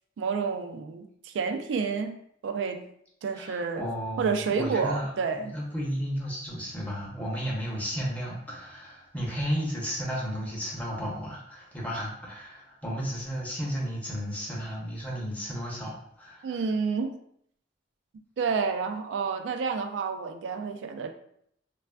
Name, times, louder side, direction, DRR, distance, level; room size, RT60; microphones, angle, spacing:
voice 1, 0.2-2.9 3.2-3.9 4.2-5.5 16.4-17.2 18.4-21.1, right 5 dB, 80° right, 6 dB, 0.3 m, -29 dB
voice 2, 3.3-5.1 5.4-16.6, equal, 10° left, -4 dB, 0.7 m, -33 dB
3.2 x 2.3 x 2.2 m, 0.69 s
head